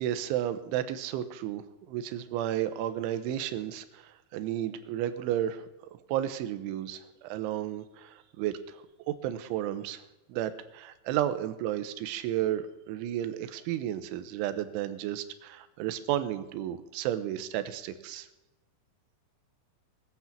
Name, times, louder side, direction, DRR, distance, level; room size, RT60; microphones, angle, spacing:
voice 1, 0.0-5.6 6.1-10.0 10.3-18.3, right 11 dB, 90° right, 11 dB, 3.4 m, -33 dB
20.0 x 8.3 x 7.3 m, 1.0 s
omnidirectional pair, 5.3 m